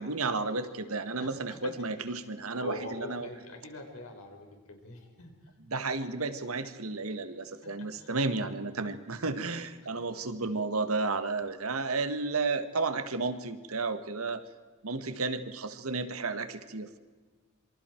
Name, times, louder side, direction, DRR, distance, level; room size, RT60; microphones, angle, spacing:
voice 1, 0.0-3.3 5.7-14.4 14.8-17.0, right 3 dB, 80° right, 10 dB, 1.6 m, -32 dB
voice 2, 1.2-1.7 2.1-2.2 2.6-5.5 7.1-7.2 7.6-8.1 9.8-9.9, left 2 dB, 80° left, 3 dB, 4.7 m, -44 dB
27.0 x 24.5 x 4.6 m, 1.4 s
head